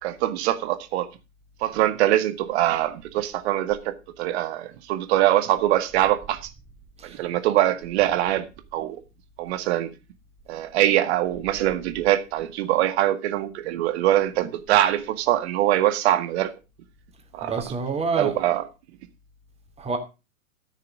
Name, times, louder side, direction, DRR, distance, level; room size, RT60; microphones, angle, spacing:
voice 1, 0.0-1.1 1.6-6.5 7.0-9.0 9.4-9.9 10.5-16.5 17.3-17.5 18.2-18.6, right 13 dB, 50° right, 1.8 m, -23 dB
voice 2, 17.4-18.3 19.8-20.0, right 4 dB, 15° right, 2.8 m, -27 dB
13.0 x 6.7 x 6.1 m
figure-of-eight pair, 105°, 43 cm